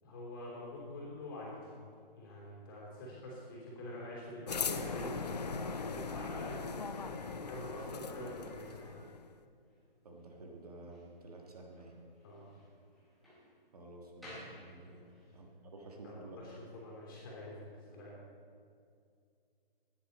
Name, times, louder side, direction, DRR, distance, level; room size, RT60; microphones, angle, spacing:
voice 1, 0.0-1.8 2.1-8.9 12.2-12.4 14.8-15.1 16.0-17.5 17.8-18.1, left 1 dB, 20° left, -4 dB, 3.2 m, -46 dB
sound 1, 4.5-9.3, left 5 dB, 45° left, 0.6 m, -40 dB
Slam, 6.0-15.4, equal, ahead, 0.9 m, -58 dB
voice 2, 10.0-11.9 13.7-16.4, right 2 dB, 40° right, 1 dB, 1.6 m, -51 dB
15.5 x 10.0 x 4.2 m, 2.3 s
hypercardioid pair, 180°, 29 cm